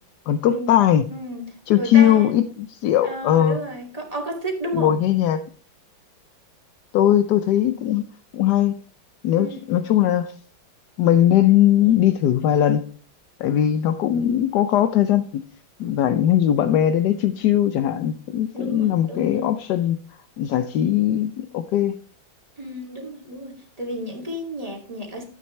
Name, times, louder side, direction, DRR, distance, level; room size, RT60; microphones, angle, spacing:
voice 1, 0.3-1.0 1.7-3.6 4.7-5.4 6.9-8.0 8.3-8.7 9.2-10.3 11.0-12.9 13.4-15.4 15.8-20.0 20.4-21.9, left 11 dB, 70° left, 9 dB, 1.1 m, -19 dB
voice 2, 1.1-2.4 3.0-5.0 9.3-9.7 18.5-19.5 22.6-25.2, equal, 20° right, -1 dB, 2.4 m, -32 dB
12.5 x 8.8 x 3.2 m, 0.43 s
omnidirectional pair, 2.2 m